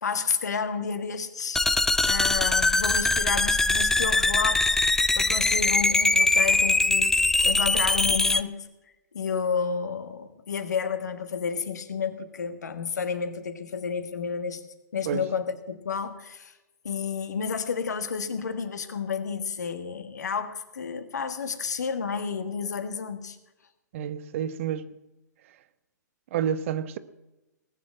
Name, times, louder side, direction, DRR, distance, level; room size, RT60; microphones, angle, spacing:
voice 1, 0.0-1.6 2.0-4.8 5.1-8.7 9.1-14.6 14.9-16.5 16.8-23.4, left 6 dB, 70° left, 1.5 m, -31 dB
sound 1, 1.6-8.4, left 2 dB, 5° left, 0.4 m, -22 dB
voice 2, 23.9-24.9 26.3-27.0, right 9 dB, 45° right, 0.9 m, -29 dB
19.0 x 7.4 x 7.7 m
figure-of-eight pair, 110°, 10 cm